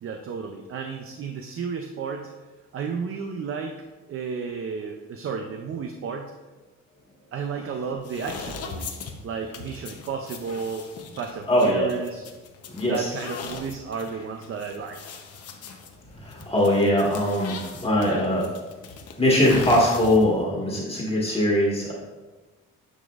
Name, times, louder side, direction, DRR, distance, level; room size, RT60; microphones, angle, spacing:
voice 1, 0.0-2.3 2.7-6.3 7.3-8.9 9.2-10.9 11.1-12.2 12.9-15.0, right 5 dB, 50° right, 4 dB, 0.5 m, -33 dB
sound 1, 8.0-20.4, left 5 dB, 55° left, 0.8 m, -40 dB
voice 2, 11.5-11.9 12.7-13.1 16.1-18.5 19.2-21.9, left 1 dB, 20° left, -5 dB, 1.6 m, -21 dB
9.6 x 5.2 x 2.4 m, 1.2 s
cardioid pair, 125°, 29 cm